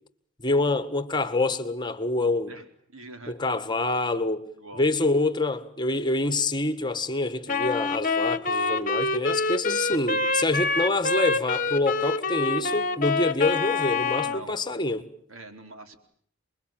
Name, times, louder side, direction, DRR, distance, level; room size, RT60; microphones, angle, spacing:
voice 1, 0.4-2.5 3.3-4.4 4.7-15.1, left 2 dB, 20° left, 1.6 m, -26 dB
voice 2, 2.9-3.4 4.6-4.9 14.2-14.5 15.3-16.0, right 2 dB, 75° right, 4.3 m, -43 dB
Wind instrument woodwind instrument, 7.5-14.4, left 3 dB, 40° left, 1.4 m, -26 dB
30.0 x 22.0 x 9.1 m
head